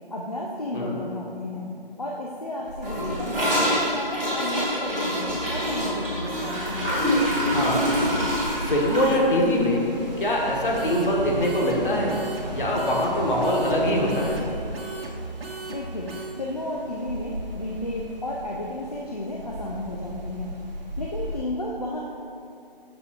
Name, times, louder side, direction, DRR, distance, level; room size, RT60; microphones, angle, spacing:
voice 1, 0.1-1.7 2.0-7.0 15.7-16.1 16.4-20.6 21.0-22.0, left 1 dB, 40° left, -2 dB, 0.4 m, -33 dB
sound 1, 2.6-21.4, equal, 45° right, 0.8 m, -39 dB
Gurgling / Toilet flush, 2.8-11.1 11.3-11.5 11.8-12.2 12.5-12.6 12.9-13.0 13.9-14.0, equal, ahead, 1.0 m, -26 dB
sound 2, 5.0-9.2 10.7-16.3, right 2 dB, 75° right, 1.1 m, -36 dB
voice 2, 7.5-7.9 8.6-9.8 10.2-12.1 12.5-14.4, left 1 dB, 60° left, -2 dB, 1.4 m, -23 dB
7.5 x 6.8 x 2.4 m, 2.6 s
hypercardioid pair, 175°, 30 cm